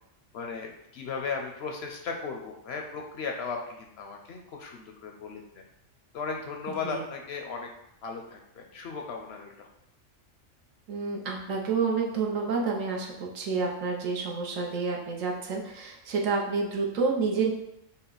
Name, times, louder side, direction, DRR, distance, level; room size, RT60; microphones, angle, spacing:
voice 1, 0.3-5.6 6.1-7.7 8.0-9.7, left 5 dB, 65° left, 2 dB, 0.7 m, -36 dB
voice 2, 10.9-17.5, right 4 dB, 80° right, -1 dB, 1.2 m, -29 dB
5.5 x 2.2 x 3.8 m, 0.81 s
omnidirectional pair, 1.3 m